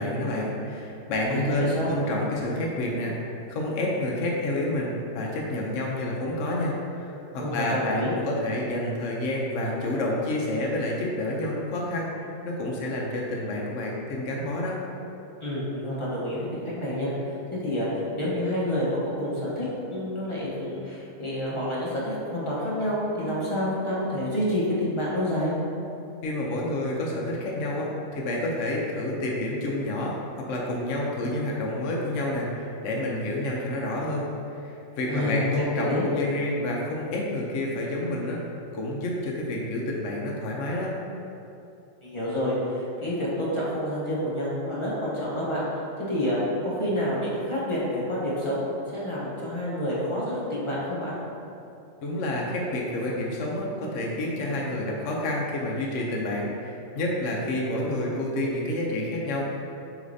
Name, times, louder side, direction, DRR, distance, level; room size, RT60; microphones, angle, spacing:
voice 1, 0.0-3.1 3.5-14.8 26.2-34.3 34.5-38.4 38.7-40.9 52.0-59.4, left 1 dB, 65° left, -3 dB, 0.9 m, -29 dB
voice 2, 1.3-1.9 7.4-8.1 15.4-17.1 17.5-25.5 35.1-35.4 35.7-36.1 42.0-45.6 46.1-48.7 48.9-51.2, left 1 dB, 25° left, -8 dB, 0.8 m, -28 dB
6.3 x 3.2 x 2.6 m, 2.7 s
omnidirectional pair, 1.4 m